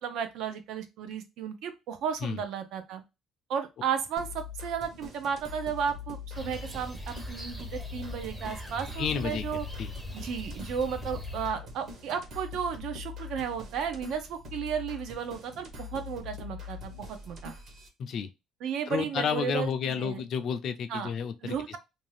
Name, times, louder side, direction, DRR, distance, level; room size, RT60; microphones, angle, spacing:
voice 1, 0.0-3.0 3.5-9.6 10.1-17.5 18.6-20.2 20.9-21.1 21.4-21.8, right 7 dB, 70° right, 0.6 m, -34 dB
sound 1, 4.2-17.9, left 5 dB, 45° right, 1.0 m, -43 dB
sound 2, 6.3-11.5, equal, 5° right, 0.6 m, -41 dB
voice 2, 9.0-9.4 9.8-9.9 18.0-18.3 18.9-21.8, left 6 dB, 50° left, 0.4 m, -31 dB
2.6 x 2.3 x 3.2 m
cardioid pair, 150°, 0 cm